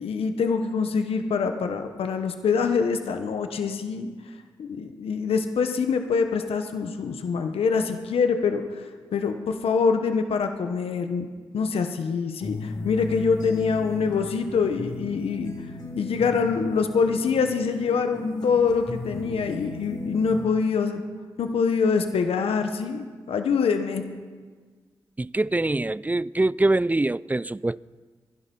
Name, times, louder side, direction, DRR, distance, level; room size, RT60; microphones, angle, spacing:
voice 1, 0.0-4.1 4.6-11.3 11.5-15.5 16.0-21.0 21.4-24.0, left 5 dB, 80° left, 1.1 m, -25 dB
sound 1, 12.4-20.4, left 2 dB, 45° left, 6.6 m, -36 dB
voice 2, 25.2-27.8, right 2 dB, 15° right, 0.4 m, -24 dB
22.5 x 11.5 x 5.5 m
supercardioid pair, 40°, 10 cm